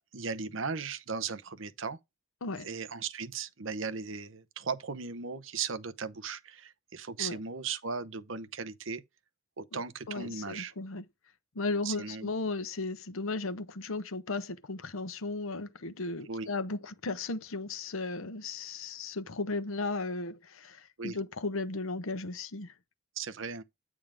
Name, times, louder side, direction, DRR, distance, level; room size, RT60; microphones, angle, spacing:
voice 1, 0.0-2.0 2.6-9.0 9.6-10.7 11.8-12.3 16.3-16.5 21.0-21.2 23.2-23.6, right 5 dB, 70° right, 0.9 m, -37 dB
voice 2, 10.1-11.0 11.5-22.7, left 3 dB, 85° left, 0.9 m, -35 dB
8.9 x 3.6 x 4.9 m
head